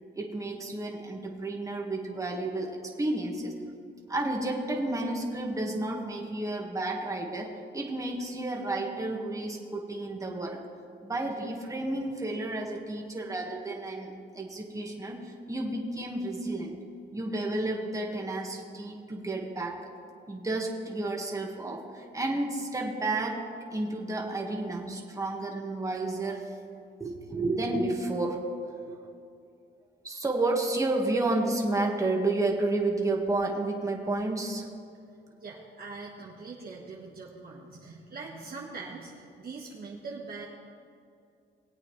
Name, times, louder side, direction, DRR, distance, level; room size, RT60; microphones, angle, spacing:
voice 1, 0.1-3.6 4.1-10.6 11.0-16.8 17.1-19.8 20.3-23.4 23.7-26.5 27.0-29.0 30.0-34.7, right 2 dB, 15° right, 0 dB, 1.8 m, -31 dB
voice 2, 35.4-40.5, right 4 dB, 50° right, -3 dB, 1.4 m, -42 dB
20.0 x 8.4 x 3.2 m, 2.4 s
cardioid pair, 90°, 20 cm